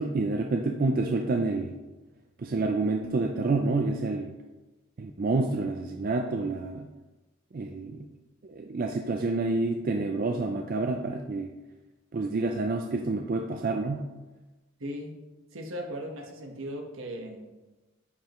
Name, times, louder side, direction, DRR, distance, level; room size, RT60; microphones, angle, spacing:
voice 1, 0.0-1.7 2.4-4.3 5.0-6.9 7.5-8.1 8.4-11.5 12.1-14.1, right 3 dB, 40° right, 4 dB, 0.4 m, -28 dB
voice 2, 14.8-15.1 15.5-17.4, equal, 70° right, 1 dB, 1.3 m, -37 dB
9.7 x 5.2 x 3.1 m, 1.2 s
head